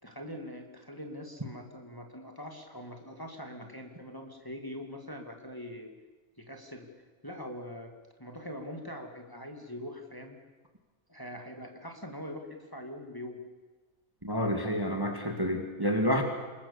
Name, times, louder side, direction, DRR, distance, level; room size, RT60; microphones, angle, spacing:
voice 1, 0.0-5.9 6.4-6.9 7.2-7.9 8.2-10.4 11.1-12.5 12.7-13.4, equal, 15° left, 3 dB, 2.4 m, -43 dB
voice 2, 14.2-16.2, equal, 15° right, 4 dB, 2.0 m, -29 dB
27.0 x 21.5 x 7.1 m, 1.3 s
omnidirectional pair, 1.6 m